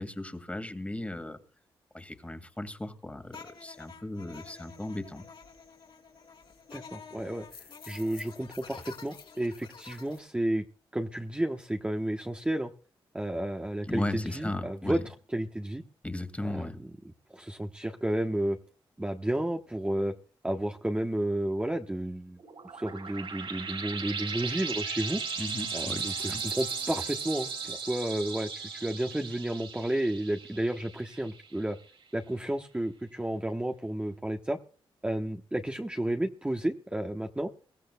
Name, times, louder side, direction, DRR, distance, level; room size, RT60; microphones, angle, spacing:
voice 1, 0.0-1.4 1.9-5.3 13.8-15.0 16.0-16.8 25.4-26.5, left 1 dB, 15° left, 2.1 m, -36 dB
sound 1, 3.3-10.2, left 5 dB, 60° left, 3.1 m, -49 dB
voice 2, 6.7-7.5 7.9-10.6 10.9-12.7 13.1-15.0 15.3-15.8 16.4-16.7 17.3-18.6 19.0-20.1 20.4-22.4 22.8-25.2 25.7-31.8 32.1-34.6 35.0-37.5, right 1 dB, 10° right, 1.1 m, -31 dB
sound 2, 22.4-31.6, right 5 dB, 65° right, 3.8 m, -37 dB
22.0 x 15.5 x 2.3 m
cardioid pair, 75°, 10 cm